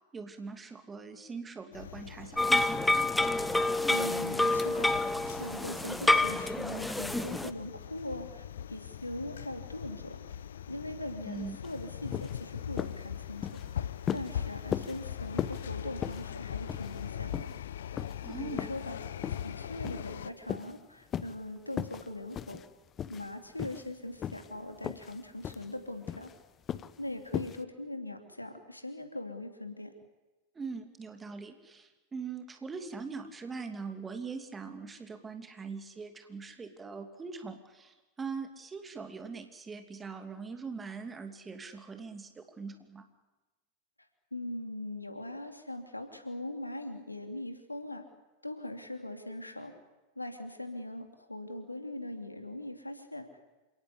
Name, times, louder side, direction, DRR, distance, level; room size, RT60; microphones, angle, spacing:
voice 1, 0.1-3.1 11.2-11.6 18.2-18.7 30.5-43.1, right 5 dB, 15° right, 7 dB, 2.6 m, -42 dB
sound 1, 1.7-20.3, left 9 dB, 65° left, 0.8 m, -41 dB
sound 2, 2.4-7.5, left 2 dB, 5° left, 1.0 m, -28 dB
voice 2, 3.9-10.2 10.7-13.8 14.1-17.5 18.2-19.0 19.3-22.6 23.1-26.3 27.0-29.9 44.3-48.0 48.4-49.7 50.2-53.3, left 1 dB, 85° left, 6 dB, 2.8 m, -41 dB
sound 3, 11.6-11.8 12.1-12.4 12.8-13.0 13.4-13.7 14.1-14.4 14.7-15.0 15.4-15.7 16.0-16.3 16.7-17.1 17.3-17.6 18.0-18.1 18.6-18.9 19.2-19.5 19.8-20.2 20.5-20.7 21.1-21.4 21.7-22.1 22.3-22.7 23.0-23.3 23.6-23.9 24.2-24.5 24.8-25.2 25.4-25.7 26.1-26.3 26.7-27.0 27.3-27.6, left 9 dB, 25° left, 0.9 m, -37 dB
28.0 x 18.0 x 8.4 m, 1.1 s
figure-of-eight pair, 90°, 0 cm